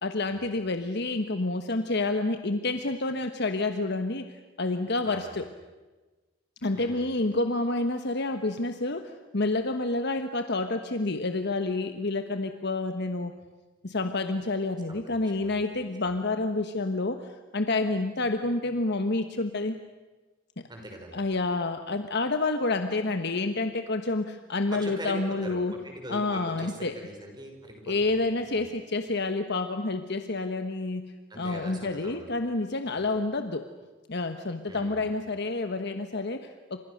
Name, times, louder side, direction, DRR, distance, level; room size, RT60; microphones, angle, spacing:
voice 1, 0.0-4.3 4.6-5.4 6.6-13.3 13.8-17.3 17.5-19.7 20.6-20.7 21.1-25.8 26.1-26.9 27.9-33.6 34.1-36.8, left 2 dB, 55° left, 7 dB, 1.3 m, -29 dB
voice 2, 6.7-7.1 14.9-15.6 20.7-21.2 24.7-28.2 28.5-28.7 31.3-32.3 33.0-33.1 34.7-35.1, right 1 dB, 20° right, 2 dB, 5.7 m, -42 dB
29.5 x 27.0 x 6.6 m, 1.2 s
head